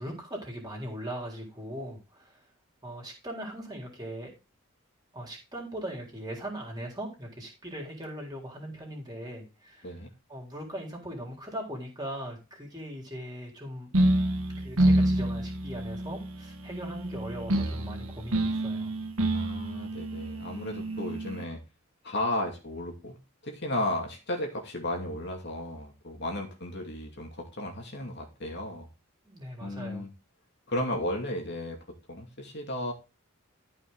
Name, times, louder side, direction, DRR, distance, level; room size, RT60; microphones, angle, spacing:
voice 1, 0.0-2.4 2.8-4.3 5.1-9.9 10.3-13.9 14.6-18.9 29.2-30.0, right 1 dB, 20° right, 0 dB, 3.9 m, -39 dB
sound 1, 13.9-21.4, right 1 dB, 75° right, 1.8 m, -28 dB
voice 2, 19.3-21.6 22.0-23.2 23.4-28.9 29.6-30.1 30.7-31.8 32.1-32.9, left 1 dB, 50° left, 2 dB, 2.5 m, -34 dB
13.5 x 5.5 x 4.0 m, 0.29 s
head